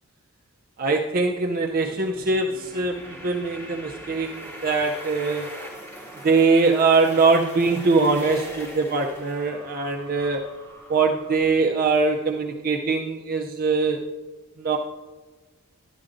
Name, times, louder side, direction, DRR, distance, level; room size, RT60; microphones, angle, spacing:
voice 1, 0.8-5.5 6.2-10.5 10.9-14.0 14.6-14.8, right 4 dB, 40° right, 1 dB, 0.5 m, -22 dB
sound 1, 1.7-11.4, right 1 dB, 10° left, 2.9 m, -41 dB
12.0 x 10.5 x 2.5 m, 1.3 s
head